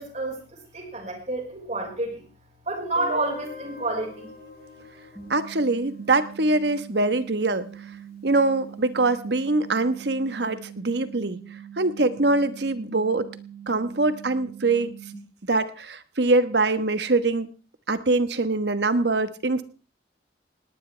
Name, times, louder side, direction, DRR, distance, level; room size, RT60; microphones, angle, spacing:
voice 1, 0.0-2.2 2.6-4.3, right 2 dB, 40° right, 3 dB, 5.1 m, -30 dB
Guitar, 3.0-7.8, left 1 dB, 55° left, 4.8 m, -43 dB
sound 1, 5.1-15.1, right 9 dB, 5° right, 7.5 m, -43 dB
voice 2, 5.3-7.7 8.2-11.4 11.8-13.3 13.7-14.9 15.5-17.5 17.9-19.6, right 2 dB, 70° right, 11 dB, 1.2 m, -23 dB
19.0 x 18.5 x 3.4 m, 0.36 s
head